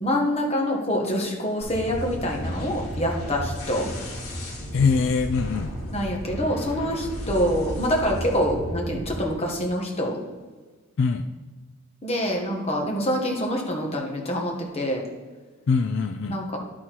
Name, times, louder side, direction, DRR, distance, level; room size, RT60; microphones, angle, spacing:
voice 1, 0.0-3.9 5.9-10.2 12.0-15.0 16.3-16.6, equal, 30° left, 0 dB, 1.4 m, -26 dB
sound 1, 1.6-9.2, equal, 80° left, 2.2 m, -33 dB
voice 2, 4.7-5.7 11.0-11.3 15.7-16.4, left 5 dB, 55° left, 7 dB, 0.3 m, -23 dB
11.0 x 4.3 x 4.6 m, 1.3 s
head